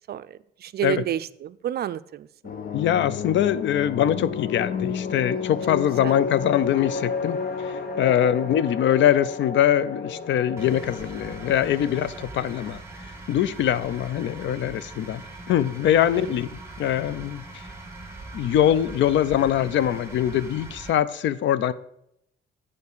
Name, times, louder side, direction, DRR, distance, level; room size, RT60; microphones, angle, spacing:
voice 1, 0.1-2.3 6.0-6.2 16.2-16.3, right 11 dB, 55° right, 15 dB, 0.4 m, -30 dB
sound 1, 2.4-12.3, left 5 dB, 50° left, 1.0 m, -32 dB
voice 2, 2.7-7.4 7.6-12.8 13.3-15.2 15.5-16.5 16.8-17.4 18.3-21.7, left 10 dB, 70° left, 16 dB, 0.5 m, -23 dB
sound 2, 10.6-20.9, right 2 dB, 15° right, 2.2 m, -41 dB
8.4 x 4.7 x 6.7 m, 0.76 s
cardioid pair, 90°, 20 cm